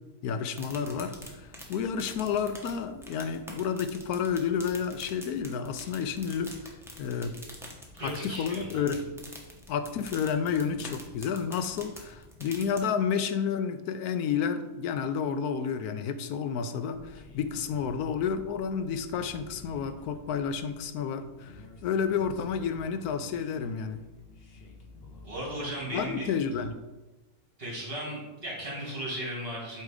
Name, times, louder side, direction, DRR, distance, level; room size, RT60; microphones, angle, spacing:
voice 1, 0.2-6.7 7.0-7.4 8.0-9.1 9.7-24.0 25.9-26.8, left 7 dB, 85° left, 9 dB, 1.1 m, -30 dB
sound 1, 0.5-12.8, equal, ahead, 0.8 m, -47 dB
voice 2, 8.0-8.9 25.2-26.3 27.6-29.8, right 1 dB, 40° right, -3 dB, 2.2 m, -36 dB
sound 2, 16.9-26.6, left 2 dB, 45° left, 0.9 m, -51 dB
8.3 x 3.3 x 4.8 m, 1.1 s
omnidirectional pair, 1.6 m